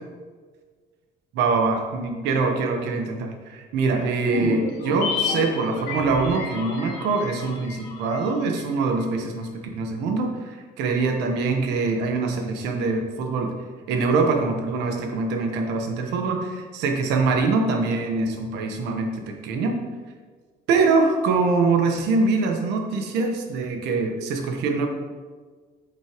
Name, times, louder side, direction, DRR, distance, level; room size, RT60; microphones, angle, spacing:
voice 1, 1.3-13.5 13.9-19.8 20.7-24.9, right 4 dB, 90° right, 4 dB, 1.2 m, -24 dB
sound 1, 4.3-8.8 9.0-9.1, left 5 dB, 90° left, 1.3 m, -31 dB
8.4 x 6.6 x 3.0 m, 1.5 s
cardioid pair, 110°, 17 cm